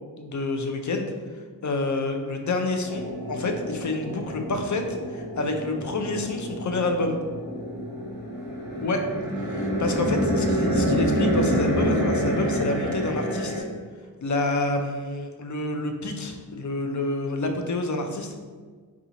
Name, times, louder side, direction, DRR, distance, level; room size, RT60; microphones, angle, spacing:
voice 1, 0.2-1.1 1.6-7.2 8.8-9.0 9.4-13.6 14.2-18.4, left 2 dB, 50° left, 4 dB, 0.4 m, -28 dB
sound 1, 2.8-13.6, equal, 85° left, 1.0 m, -27 dB
2.8 x 2.4 x 3.8 m, 1.5 s
wide cardioid pair, 60°, 39 cm